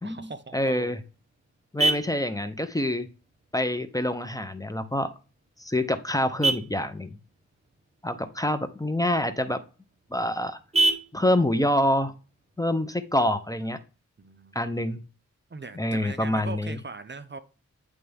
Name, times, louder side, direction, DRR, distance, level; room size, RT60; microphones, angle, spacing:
voice 1, 0.0-0.9 14.2-15.0 15.5-17.4, right 3 dB, 40° right, 0.6 m, -40 dB
voice 2, 0.5-1.0 1.7-3.1 3.5-5.1 5.6-7.2 8.0-9.6 10.1-10.6 11.1-12.1 12.6-13.8 14.5-15.0 15.8-16.8, left 1 dB, 10° left, 0.7 m, -26 dB
Vehicle horn car horn honking, 0.5-13.5, right 2 dB, 20° right, 1.1 m, -33 dB
9.4 x 3.3 x 3.5 m
wide cardioid pair, 60°, 29 cm